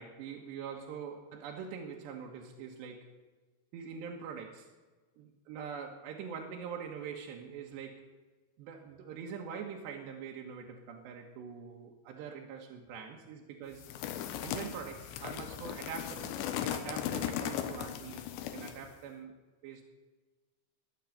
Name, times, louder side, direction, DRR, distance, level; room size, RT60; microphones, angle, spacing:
voice 1, 0.0-3.1 3.7-4.7 5.2-8.1 8.6-13.9 14.4-16.4 16.6-18.3 18.5-19.8, right 6 dB, 80° right, 0 dB, 3.5 m, -44 dB
sound 1, 13.8-18.9, left 10 dB, 85° left, 3.4 m, -37 dB
21.5 x 7.2 x 9.1 m, 1.3 s
omnidirectional pair, 5.0 m